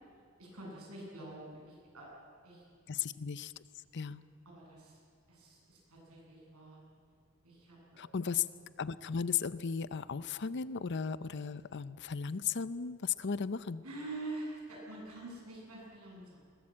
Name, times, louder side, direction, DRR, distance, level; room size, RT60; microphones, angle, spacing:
voice 1, 0.4-2.1 2.4-2.6 3.9-5.0 5.3-6.8 7.4-8.0 13.8-16.4, right 2 dB, 85° right, -3 dB, 8.0 m, -46 dB
voice 2, 2.9-3.5 3.9-4.2 8.0-8.4 8.8-13.8, left 6 dB, 55° left, 16 dB, 0.6 m, -35 dB
21.0 x 18.5 x 8.7 m, 2.3 s
head